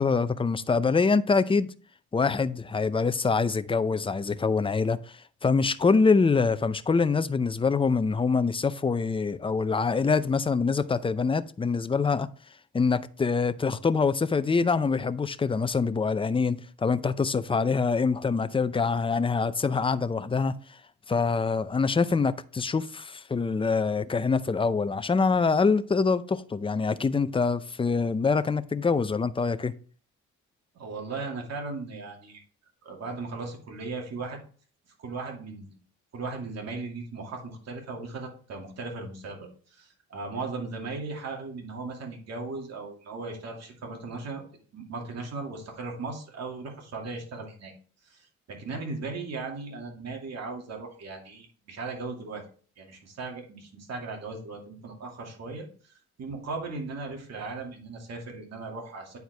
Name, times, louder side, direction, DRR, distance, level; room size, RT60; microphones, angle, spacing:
voice 1, 0.0-1.7 2.1-5.0 5.4-12.3 12.7-20.5 21.1-29.7, left 4 dB, 20° left, 0.5 m, -25 dB
voice 2, 30.7-32.4 32.8-34.4 35.0-35.8 36.1-44.4 44.7-47.7 48.0-52.4 52.8-59.2, right 3 dB, 60° right, 2.4 m, -37 dB
9.4 x 4.6 x 3.4 m
cardioid pair, 90°, 30 cm